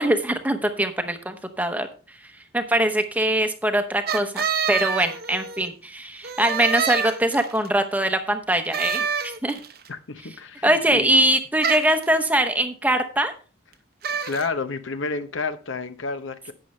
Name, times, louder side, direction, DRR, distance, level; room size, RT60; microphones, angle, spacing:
voice 1, 0.0-1.9 2.5-9.6 10.6-13.3, right 1 dB, 10° right, 0.8 m, -22 dB
sound 1, 4.1-5.7 6.2-7.7 8.7-9.8 11.6-12.0 14.0-14.5, right 6 dB, 50° right, 0.8 m, -27 dB
voice 2, 9.9-11.1 14.2-16.5, left 4 dB, 70° left, 0.8 m, -30 dB
11.5 x 8.4 x 3.2 m
head